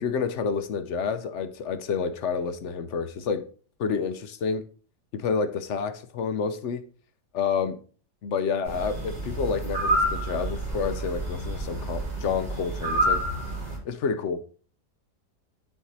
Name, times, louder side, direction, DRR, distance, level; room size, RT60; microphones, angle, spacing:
voice 1, 0.0-3.5 3.8-4.6 5.1-6.8 7.3-7.8 8.2-13.2 13.8-14.4, left 5 dB, 55° left, 10 dB, 0.9 m, -29 dB
sound 1, 8.7-13.8, right 1 dB, 80° right, 4.5 m, -28 dB
9.4 x 4.7 x 4.0 m, 0.41 s
omnidirectional pair, 1.8 m